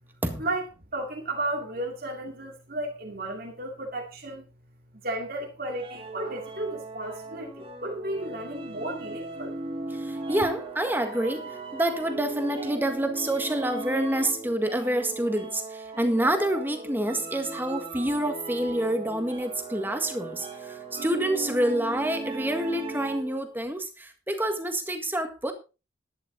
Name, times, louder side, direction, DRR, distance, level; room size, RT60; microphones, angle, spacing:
voice 1, 0.9-4.5 5.0-9.6, right 1 dB, 50° right, 2.5 m, -33 dB
sound 1, 5.7-23.4, right 3 dB, 30° right, 2.1 m, -38 dB
voice 2, 9.9-25.5, right 1 dB, 10° right, 1.7 m, -28 dB
11.5 x 11.0 x 3.9 m
head